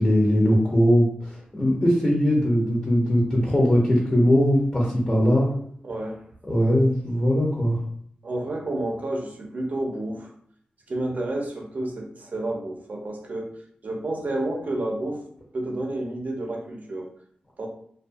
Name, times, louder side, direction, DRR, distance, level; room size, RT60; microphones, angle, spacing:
voice 1, 0.0-5.5 6.5-7.8, equal, 25° left, -4 dB, 0.8 m, -20 dB
voice 2, 5.8-6.2 8.2-10.3 10.9-13.5 13.8-15.2 15.5-17.1 17.6-17.7, right 1 dB, 60° right, 1 dB, 0.7 m, -30 dB
2.3 x 2.3 x 2.6 m, 0.64 s
cardioid pair, 55°, 3 cm